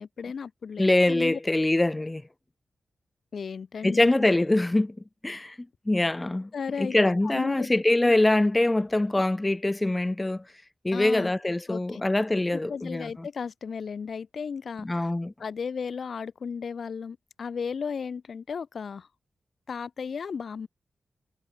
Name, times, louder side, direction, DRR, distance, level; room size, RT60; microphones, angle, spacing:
voice 1, 0.0-1.4 3.3-4.1 6.5-7.7 8.0-8.1 10.9-11.3 11.7-12.0 12.5-15.1 15.4-19.1 19.7-20.7, left 6 dB, 70° left, 2.2 m, -35 dB
voice 2, 0.8-2.2 3.8-5.0 5.2-5.6 5.9-6.5 6.8-10.4 10.8-13.3 14.8-15.3, left 2 dB, 25° left, 0.4 m, -24 dB
supercardioid pair, 40°, 0 cm